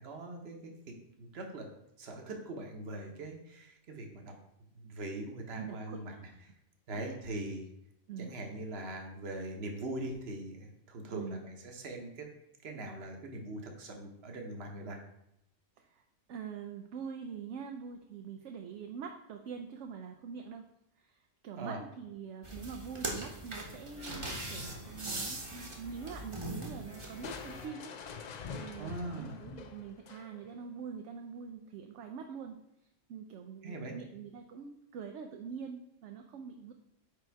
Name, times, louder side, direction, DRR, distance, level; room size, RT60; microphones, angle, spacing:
voice 1, 0.0-1.7 2.0-4.4 4.7-6.1 6.9-7.7 8.2-12.3 12.6-15.0 21.6-21.8 28.8-29.4 33.6-33.9, right 2 dB, 55° right, 3 dB, 1.2 m, -41 dB
voice 2, 5.5-6.4 6.9-7.2 8.1-8.4 11.1-11.4 15.8-16.0 16.3-20.7 21.0-27.9 28.6-32.6 33.1-36.7, right 6 dB, 75° right, 4 dB, 0.9 m, -44 dB
sound 1, 22.4-27.6, right 1 dB, 25° right, 1.0 m, -41 dB
sound 2, 24.0-29.0, left 1 dB, 50° left, 1.2 m, -54 dB
Crushing, 27.2-30.6, left 6 dB, 70° left, 0.4 m, -45 dB
5.1 x 4.6 x 4.5 m, 0.81 s
omnidirectional pair, 1.3 m